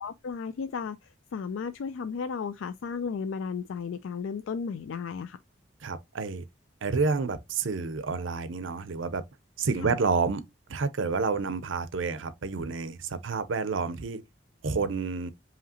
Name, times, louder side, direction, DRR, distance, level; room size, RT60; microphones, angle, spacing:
voice 1, 0.0-5.4 9.8-10.0, left 5 dB, 90° left, 0.4 m, -34 dB
voice 2, 5.8-6.5 6.8-9.2 9.6-10.4 10.7-14.2 14.6-15.3, right 4 dB, 85° right, 0.6 m, -29 dB
4.9 x 2.9 x 2.8 m
head